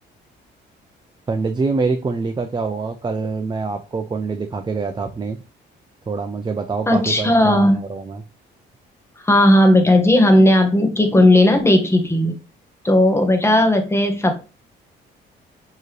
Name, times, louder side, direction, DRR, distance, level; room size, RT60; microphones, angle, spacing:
voice 1, 1.3-5.4 6.1-8.2, right 4 dB, 25° right, 5 dB, 0.5 m, -25 dB
voice 2, 6.9-7.8 9.2-12.4 12.8-14.3, left 1 dB, 15° left, 4 dB, 1.1 m, -15 dB
4.6 x 3.0 x 3.1 m, 0.32 s
cardioid pair, 90°, 20 cm